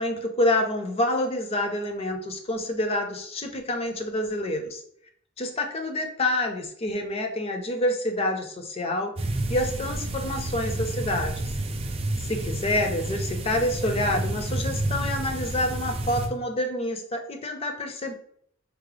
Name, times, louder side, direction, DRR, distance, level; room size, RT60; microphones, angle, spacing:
voice 1, 0.0-4.8 5.4-11.4 12.2-18.1, left 1 dB, 30° left, 5 dB, 0.5 m, -27 dB
sound 1, 9.2-16.3, right 1 dB, 30° right, 0.4 m, -30 dB
4.7 x 2.0 x 3.3 m, 0.65 s
head